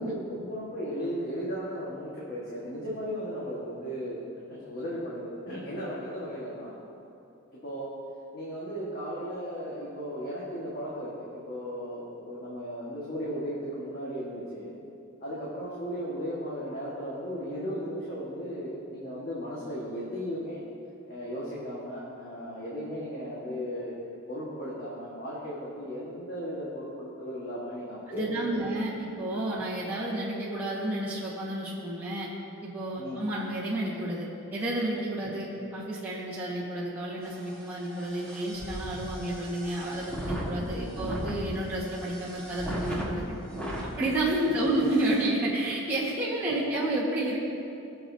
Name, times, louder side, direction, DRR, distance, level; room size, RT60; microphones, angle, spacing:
voice 1, 0.0-4.2 4.5-6.8 7.6-7.9 8.3-14.7 15.2-20.6 21.1-28.6 29.6-29.7 33.0-33.2 35.3-35.4 40.7-41.2 46.5-46.7, equal, 45° left, -7 dB, 1.6 m, -36 dB
voice 2, 28.1-32.3 32.6-43.2 44.0-47.4, right 1 dB, 10° right, -10 dB, 1.5 m, -30 dB
sound 1, 37.2-43.9 44.5-44.6 44.8-45.2, equal, 5° left, 1.4 m, -37 dB
20.0 x 6.9 x 2.8 m, 2.8 s
head